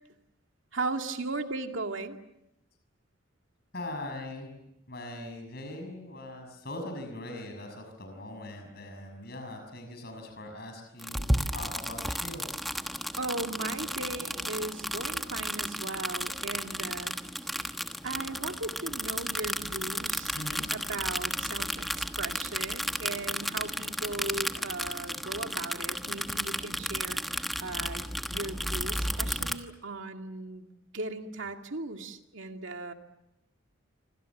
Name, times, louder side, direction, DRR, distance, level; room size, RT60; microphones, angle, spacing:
voice 1, 0.7-2.2 13.2-17.1 17.6-17.7 18.0-20.4 20.7-28.0 28.3-30.7 30.9-32.9, right 2 dB, 70° right, 5 dB, 2.2 m, -37 dB
voice 2, 3.7-4.5 4.9-12.5 20.3-20.7, left 1 dB, 50° left, 4 dB, 6.3 m, -41 dB
sound 1, 11.0-29.6, equal, ahead, 1.2 m, -33 dB
28.0 x 25.5 x 7.3 m, 0.86 s
head